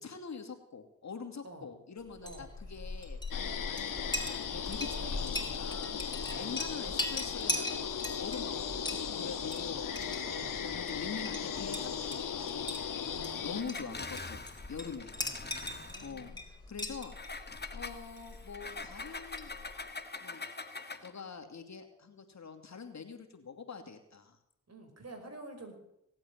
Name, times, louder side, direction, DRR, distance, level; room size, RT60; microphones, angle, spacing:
voice 1, 0.0-10.2 10.6-12.7 13.4-14.4 14.7-15.1 16.0-17.2 17.7-19.5 20.2-20.4 21.0-24.4, left 5 dB, 55° left, 5 dB, 2.5 m, -45 dB
Chink clink, 2.1-19.9, left 2 dB, 15° left, 4.5 m, -41 dB
sound 1, 3.3-13.6, left 7 dB, 75° left, 1.7 m, -37 dB
voice 2, 4.8-5.7 6.2-7.1 10.2-10.6 13.1-14.0 15.2-16.4 24.7-25.8, right 2 dB, 50° right, 4 dB, 5.4 m, -50 dB
Engine, 13.6-16.3 17.1-21.2, left 3 dB, 30° left, 1.7 m, -44 dB
18.0 x 8.6 x 8.8 m, 0.80 s
supercardioid pair, 40°, 33 cm